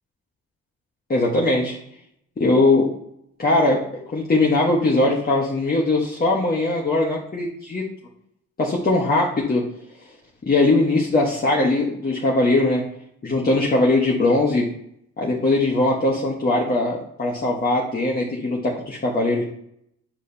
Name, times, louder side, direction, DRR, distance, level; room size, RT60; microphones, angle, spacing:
voice 1, 1.1-1.8 2.4-2.9 3.4-7.8 8.6-9.6 10.4-12.8 13.2-14.6 15.2-19.4, left 2 dB, 30° left, -4 dB, 1.4 m, -20 dB
8.8 x 4.9 x 2.8 m, 0.71 s
cardioid pair, 90°, 30 cm